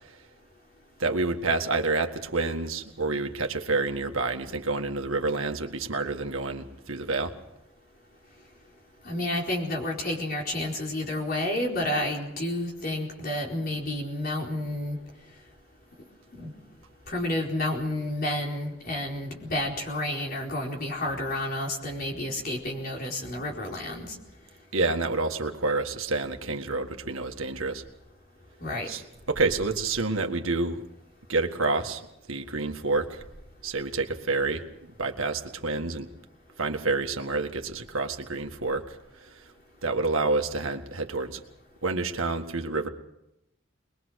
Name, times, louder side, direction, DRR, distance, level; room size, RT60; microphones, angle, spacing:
voice 1, 1.0-7.3 24.7-27.8 28.9-29.0 29.3-30.8 31.3-32.0 32.3-33.2 33.6-34.6 35.0-36.1 36.6-38.8 39.2-39.4 39.8-41.4 41.8-42.9, right 3 dB, 75° right, 5 dB, 1.8 m, -28 dB
voice 2, 9.0-15.0 16.4-16.5 17.1-24.2 28.6-28.9, left 1 dB, 45° left, 0 dB, 4.5 m, -30 dB
22.5 x 21.5 x 6.5 m, 0.86 s
head